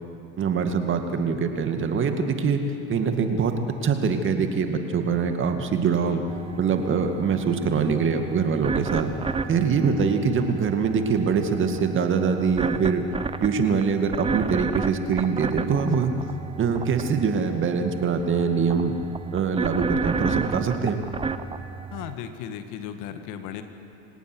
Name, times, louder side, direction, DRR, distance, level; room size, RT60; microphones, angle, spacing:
voice 1, 0.4-2.6 2.9-3.5 3.8-6.2 6.6-9.1 9.5-13.1 13.4-16.1 16.6-19.0 19.3-21.0, right 6 dB, 35° right, 6 dB, 2.1 m, -23 dB
sound 1, 6.3-22.1, right 4 dB, 15° right, 0.9 m, -32 dB
voice 2, 21.9-23.6, left 9 dB, 55° left, 8 dB, 1.9 m, -36 dB
27.0 x 17.5 x 6.2 m, 2.7 s
hypercardioid pair, 85°, 34 cm